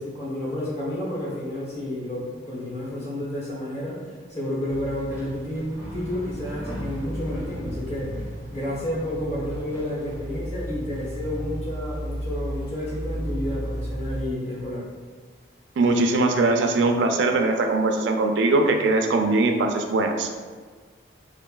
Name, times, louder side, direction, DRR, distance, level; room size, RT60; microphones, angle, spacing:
voice 1, 0.0-14.9, left 1 dB, 35° left, -5 dB, 0.9 m, -31 dB
sound 1, 4.7-14.2, equal, 10° right, 0.5 m, -34 dB
voice 2, 15.8-20.3, right 2 dB, 70° right, 4 dB, 0.3 m, -21 dB
4.2 x 2.4 x 2.2 m, 1.5 s
head